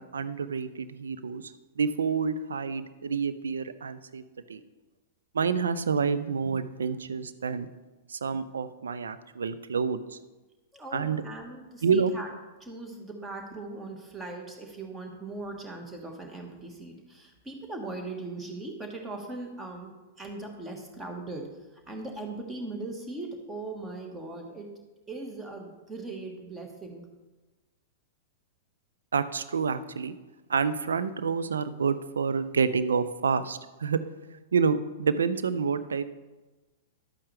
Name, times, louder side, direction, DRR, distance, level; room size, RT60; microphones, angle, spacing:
voice 1, 0.0-4.6 5.3-7.7 8.1-10.2 10.9-11.2 11.8-12.1 29.1-30.2 30.5-34.0 34.5-36.0, right 5 dB, 70° right, 13 dB, 0.5 m, -28 dB
voice 2, 10.7-12.3 12.6-24.7 25.1-27.0, right 2 dB, 15° right, 3 dB, 1.5 m, -39 dB
11.0 x 8.5 x 3.4 m, 1.2 s
figure-of-eight pair, 100°, 0 cm